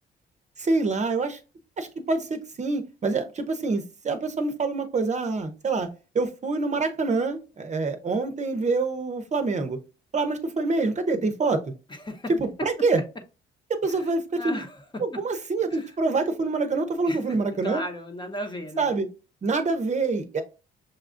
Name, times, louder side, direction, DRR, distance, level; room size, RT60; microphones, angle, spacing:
voice 1, 0.6-1.4 1.8-5.9 6.1-9.8 10.1-11.6 12.3-13.0 13.7-14.6 15.0-17.8 18.8-19.1 19.4-20.4, right 3 dB, 35° right, 0.7 m, -26 dB
voice 2, 11.9-12.3 12.6-12.9 13.9-14.1 14.3-15.2 15.7-15.9 17.1-17.4 17.6-18.9, equal, 25° left, 0.9 m, -36 dB
6.3 x 2.3 x 2.5 m
cardioid pair, 90°, 20 cm